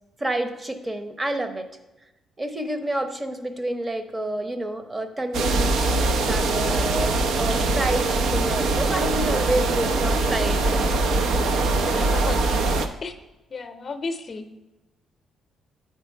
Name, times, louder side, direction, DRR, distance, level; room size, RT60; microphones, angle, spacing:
voice 1, 0.2-1.7 2.4-10.9, right 1 dB, 25° right, 8 dB, 0.8 m, -29 dB
sound 1, 5.3-12.9, right 3 dB, 80° right, 0.5 m, -22 dB
voice 2, 11.8-12.7 13.0-13.1 13.5-14.5, left 3 dB, 40° left, 8 dB, 0.6 m, -34 dB
8.2 x 4.5 x 4.4 m, 1.1 s
cardioid pair, 90°, 0 cm